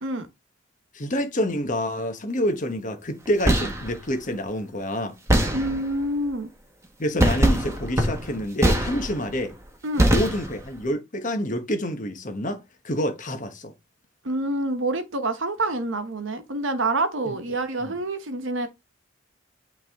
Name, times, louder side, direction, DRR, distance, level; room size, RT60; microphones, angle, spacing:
voice 1, 0.9-5.2 7.0-9.6 10.0-13.7 17.3-17.4 17.8-17.9, equal, 35° left, 1.1 m, -27 dB
sound 1, 3.2-3.9 5.3-6.0 7.2-9.4 10.0-10.8, right 1 dB, 15° right, 1.1 m, -22 dB
voice 2, 5.5-6.5 9.8-10.1 14.2-18.7, right 2 dB, 60° right, 1.0 m, -27 dB
8.7 x 3.4 x 3.5 m
head